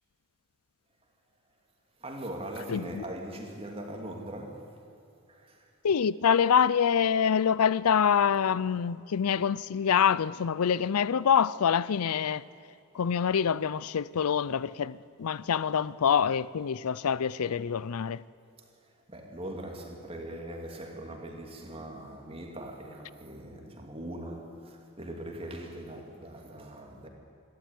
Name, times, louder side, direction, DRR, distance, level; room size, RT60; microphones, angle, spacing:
voice 1, 2.0-4.7 5.3-5.7 18.6-27.1, right 1 dB, 25° right, 2.6 m, -41 dB
voice 2, 2.7-3.0 5.8-12.4 12.9-18.2, left 7 dB, 85° left, 0.5 m, -26 dB
25.5 x 12.5 x 9.3 m
head